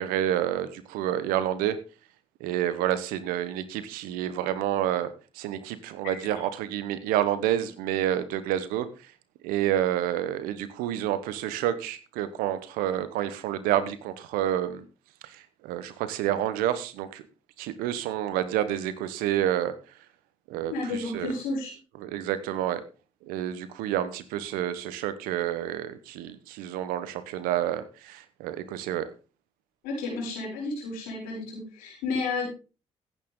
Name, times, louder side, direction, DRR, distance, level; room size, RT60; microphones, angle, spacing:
voice 1, 0.0-1.8 2.4-8.9 9.4-14.8 15.2-17.2 17.6-19.7 20.5-21.3 22.0-22.8 23.2-29.1, right 11 dB, 80° right, 14 dB, 1.2 m, -29 dB
voice 2, 20.7-21.7 29.8-32.5, left 3 dB, 80° left, -2 dB, 6.8 m, -31 dB
15.5 x 9.1 x 3.8 m, 0.34 s
hypercardioid pair, 45°, 14 cm